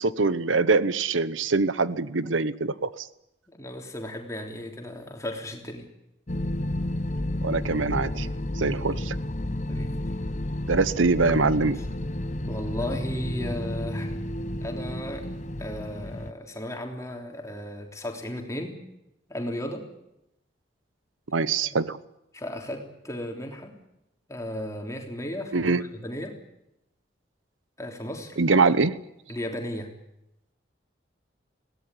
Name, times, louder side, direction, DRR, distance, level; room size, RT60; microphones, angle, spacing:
voice 1, 0.0-3.1 7.4-8.3 8.6-9.2 10.7-11.8 21.3-22.0 25.5-25.8 28.4-29.0, right 4 dB, 90° right, 16 dB, 1.0 m, -23 dB
voice 2, 3.5-5.9 8.9-9.0 9.7-9.9 12.5-14.2 14.6-15.3 15.6-18.8 19.3-19.9 21.6-21.7 22.3-23.8 24.3-26.4 27.8-28.4 29.3-29.9, left 1 dB, 15° left, 2 dB, 3.4 m, -35 dB
sound 1, 6.3-16.3, left 1 dB, 40° left, 0.9 m, -31 dB
21.5 x 17.5 x 9.8 m, 0.85 s
head